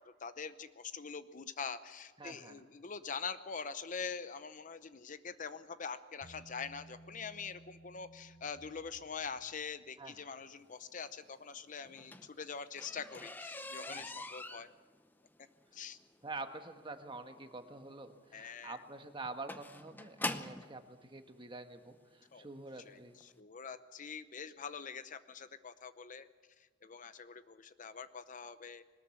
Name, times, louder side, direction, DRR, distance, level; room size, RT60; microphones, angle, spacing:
voice 1, 0.2-14.7 15.7-16.0 18.3-18.8 22.3-22.5 22.9-26.3 26.8-28.8, left 5 dB, 45° left, 12 dB, 0.8 m, -44 dB
voice 2, 2.2-2.6 10.0-10.2 13.9-14.1 16.2-23.2, right 3 dB, 25° right, 7 dB, 1.4 m, -47 dB
Bass guitar, 6.2-9.6, right 1 dB, 90° left, 5.6 m, -58 dB
sound 1, 11.8-20.7 21.6-21.7 22.3-22.5 22.8-22.9 23.2-23.3, left 2 dB, 10° left, 0.8 m, -44 dB
21.5 x 19.5 x 7.2 m, 1.5 s
head